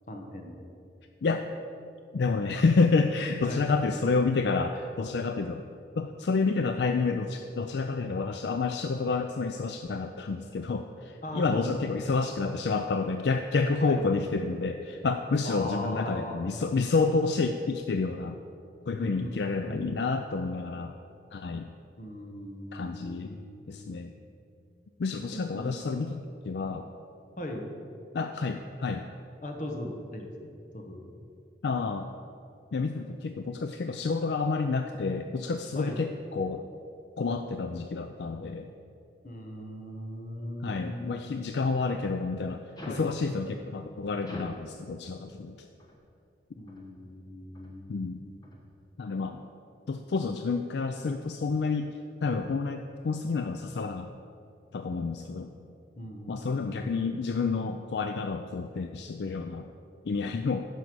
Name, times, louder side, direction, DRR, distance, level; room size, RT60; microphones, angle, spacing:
voice 1, 0.1-0.7 3.4-3.7 11.2-11.9 13.8-14.0 15.4-16.4 19.0-20.0 22.0-24.0 25.3-25.7 27.4-27.7 29.4-31.1 35.7-36.0 39.2-41.2 42.9-43.1 46.6-48.5 56.0-57.0, left 1 dB, 45° left, 2 dB, 1.2 m, -39 dB
voice 2, 2.1-5.7 5.9-18.4 18.9-21.0 21.3-21.7 22.7-23.4 23.7-24.1 25.0-26.9 28.1-29.1 31.6-32.1 32.7-36.6 37.2-38.7 40.6-45.7 47.9-48.2 49.0-49.4 49.9-54.1 54.7-55.5 56.3-59.7 60.0-60.7, left 4 dB, 70° left, 7 dB, 0.4 m, -29 dB
sound 1, 42.8-43.2 44.2-44.7 45.8-46.0 46.7-46.9 47.5-47.8 48.4-48.7, left 1 dB, 20° left, 1.1 m, -44 dB
11.0 x 5.3 x 6.1 m, 2.5 s
head